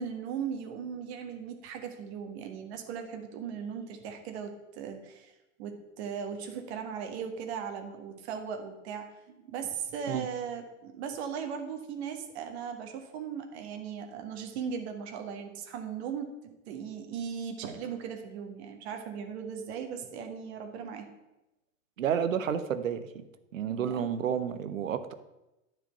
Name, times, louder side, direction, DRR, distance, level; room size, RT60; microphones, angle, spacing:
voice 1, 0.0-16.3 16.7-21.1 23.7-24.1, right 7 dB, 50° right, 5 dB, 1.7 m, -38 dB
voice 2, 22.0-23.2 23.5-25.1, right 8 dB, 70° right, 10 dB, 1.0 m, -30 dB
9.7 x 5.0 x 8.0 m, 0.97 s
figure-of-eight pair, 95°, 40 cm